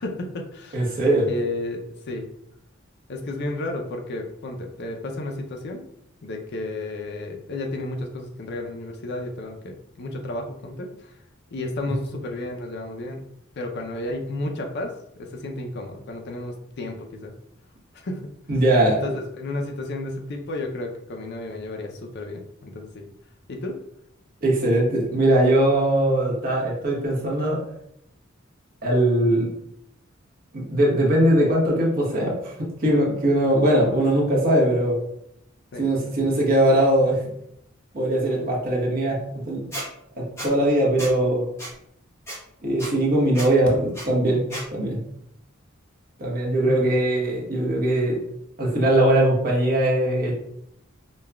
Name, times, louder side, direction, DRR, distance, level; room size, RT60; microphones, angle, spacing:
voice 1, 0.0-1.0 1.3-2.3 3.1-5.8 6.2-11.2 11.5-13.2 13.6-17.3 17.9-18.3 18.9-23.1 23.5-23.8 35.7-36.1 46.6-46.9, left 2 dB, 55° left, 3 dB, 0.5 m, -32 dB
voice 2, 0.7-1.3 18.5-19.2 24.4-27.6 28.8-29.5 30.5-35.0 35.8-37.2 37.9-39.7 40.2-41.5 42.6-44.4 44.7-45.0 46.2-48.2 48.6-50.3, right 1 dB, 45° right, -3 dB, 1.1 m, -21 dB
Squeak, 39.7-39.9 40.4-40.5 41.0-41.1 41.6-41.7 42.3-42.4 42.8-42.9 43.3-43.5 43.9-44.1 44.5-44.6, equal, 15° left, 0.9 m, -33 dB
5.2 x 2.3 x 2.2 m, 0.74 s
head